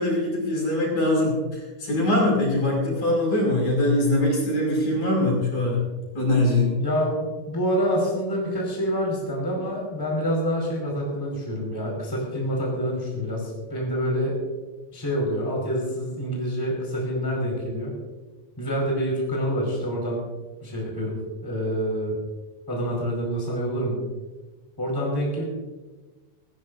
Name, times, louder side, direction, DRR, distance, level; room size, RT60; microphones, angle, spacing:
voice 1, 0.0-5.8 6.1-6.8, left 1 dB, 50° left, -3 dB, 7.0 m, -22 dB
voice 2, 6.8-14.4 14.9-17.9 18.6-20.2 20.6-22.2 22.7-24.0 24.8-25.5, equal, 5° left, -2 dB, 4.8 m, -27 dB
19.5 x 18.5 x 2.7 m, 1.3 s
omnidirectional pair, 4.5 m